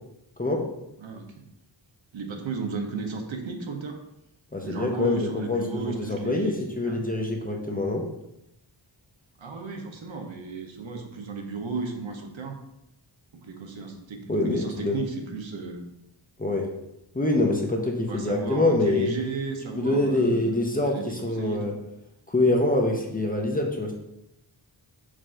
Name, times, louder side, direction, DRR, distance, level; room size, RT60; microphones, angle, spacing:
voice 1, 1.0-1.4 2.1-4.0 4.6-7.0 9.4-12.6 13.3-15.8 18.1-21.7, right 4 dB, 70° right, 3 dB, 0.8 m, -34 dB
voice 2, 4.5-8.1 14.3-15.0 16.4-16.7 17.1-19.1 19.8-21.7 22.3-23.9, left 2 dB, 20° left, 1 dB, 0.6 m, -25 dB
5.0 x 2.5 x 4.3 m, 0.84 s
wide cardioid pair, 100°, 49 cm